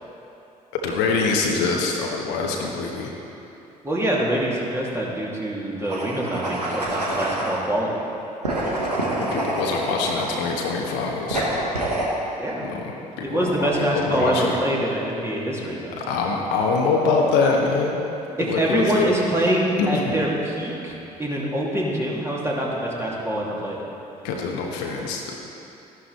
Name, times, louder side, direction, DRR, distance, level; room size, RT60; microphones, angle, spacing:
voice 1, 0.7-3.1 8.7-8.9 9.2-11.4 12.6-12.8 13.2-14.6 16.0-18.0 18.4-19.1 19.8-20.2 24.2-25.4, left 4 dB, 60° left, 0 dB, 1.2 m, -24 dB
voice 2, 3.8-7.9 12.4-12.7 13.2-15.9 18.4-23.8, right 1 dB, 15° right, -5 dB, 2.8 m, -25 dB
sound 1, 5.8-7.6 8.4-10.6 11.3-12.1, right 1 dB, 90° right, 1.2 m, -26 dB
12.5 x 11.5 x 4.2 m, 2.9 s
figure-of-eight pair, 50°, 20 cm